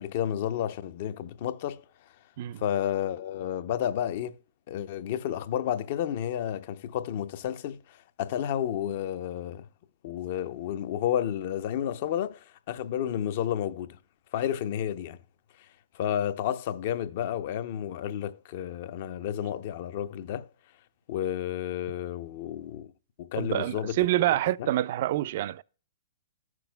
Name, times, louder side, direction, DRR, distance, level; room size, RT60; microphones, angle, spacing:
voice 1, 0.0-1.8 2.6-4.4 4.7-9.7 10.0-14.0 14.3-15.2 15.9-20.5 21.1-22.9 23.2-24.0 24.6-24.7, left 10 dB, 50° left, 0.6 m, -31 dB
voice 2, 23.4-25.6, right 14 dB, 55° right, 0.3 m, -27 dB
13.0 x 6.1 x 2.2 m
hypercardioid pair, 135°, 0 cm